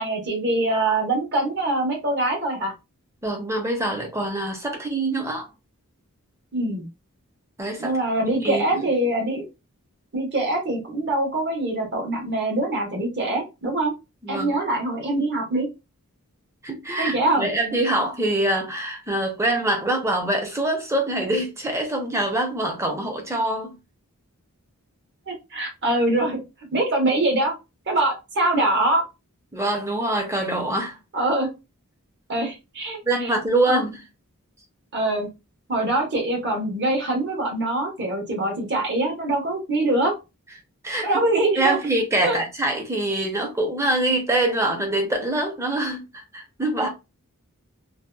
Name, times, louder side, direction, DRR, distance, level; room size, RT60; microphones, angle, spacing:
voice 1, 0.0-2.7 6.5-6.9 7.8-9.4 10.1-13.9 14.3-15.7 17.0-17.5 25.3-26.4 26.7-27.5 27.9-29.0 31.1-31.5 32.3-33.0 33.7-33.8 34.9-35.3 35.7-40.1 41.0-41.7 42.2-42.4, right 2 dB, 50° right, 1.0 m, -23 dB
voice 2, 3.2-5.5 7.6-8.0 8.2-8.9 14.2-14.6 16.6-23.7 29.5-31.0 33.0-34.0 40.8-41.1 41.6-46.9, right 1 dB, 15° right, 0.5 m, -24 dB
2.7 x 2.2 x 2.2 m
head